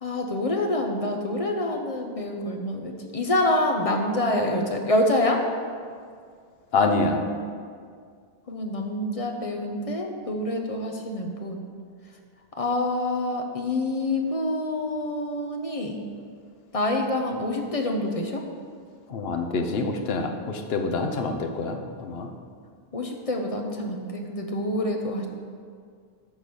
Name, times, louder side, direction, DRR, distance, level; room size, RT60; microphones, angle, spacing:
voice 1, 0.0-5.5 8.5-11.6 12.6-16.0 16.7-18.4 22.9-25.3, left 1 dB, 35° left, 2 dB, 0.9 m, -26 dB
voice 2, 6.7-7.2 19.1-22.3, left 3 dB, 70° left, 5 dB, 1.0 m, -26 dB
11.0 x 4.0 x 6.9 m, 2.1 s
omnidirectional pair, 1.1 m